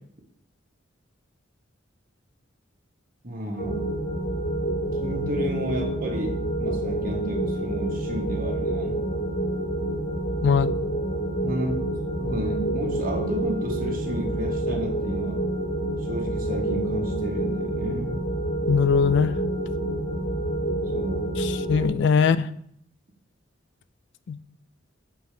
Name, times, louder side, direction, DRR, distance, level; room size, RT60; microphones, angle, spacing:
voice 1, 3.2-3.8 5.0-9.0 11.4-11.7 12.2-15.4 16.0-18.2 20.9-21.3 22.2-22.3, right 1 dB, 45° right, 1 dB, 1.2 m, -31 dB
sound 1, 3.6-21.9, right 1 dB, 40° left, 1.5 m, -28 dB
voice 2, 18.7-19.4 21.4-22.5 24.3-24.4, left 6 dB, 60° left, 14 dB, 0.3 m, -21 dB
6.8 x 3.2 x 5.0 m, 0.66 s
head